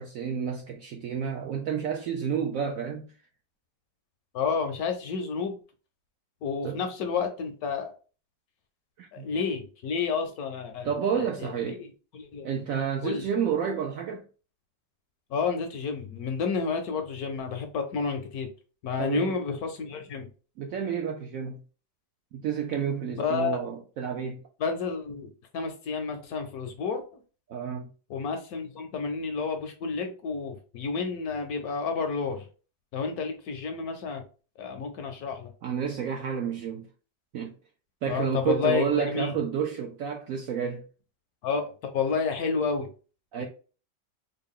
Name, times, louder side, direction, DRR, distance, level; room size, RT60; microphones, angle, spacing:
voice 1, 0.0-3.1 6.6-6.8 9.0-9.3 10.8-11.8 12.4-14.2 19.0-19.4 20.6-21.6 22.3-24.4 27.5-27.9 35.6-36.9 37.3-37.5 38.0-40.9 43.3-43.5, right 7 dB, 75° right, 0.8 m, -30 dB
voice 2, 4.3-5.6 6.4-7.9 9.1-10.9 11.1-11.9 12.1-12.5 13.0-13.2 15.3-18.5 18.8-20.3 23.1-23.6 24.6-27.2 28.1-32.4 32.9-34.2 34.6-35.5 38.1-39.3 41.4-42.9, left 5 dB, 70° left, 1.0 m, -30 dB
3.6 x 2.2 x 3.6 m
omnidirectional pair, 1.9 m